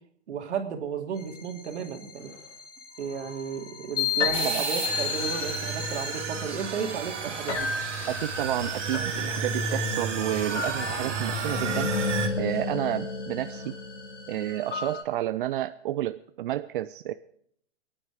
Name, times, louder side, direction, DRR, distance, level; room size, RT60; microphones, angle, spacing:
voice 1, 0.3-2.4 3.0-7.7, right 6 dB, 70° right, 4 dB, 3.0 m, -33 dB
sound 1, 1.2-15.0, left 5 dB, 75° left, 5.0 m, -34 dB
sound 2, 4.3-12.3, right 4 dB, 85° right, 3.5 m, -32 dB
voice 2, 8.1-11.9 12.4-13.7 14.3-17.1, right 13 dB, 45° right, 12 dB, 0.6 m, -30 dB
23.5 x 9.8 x 4.9 m, 0.68 s
hypercardioid pair, 140°, 36 cm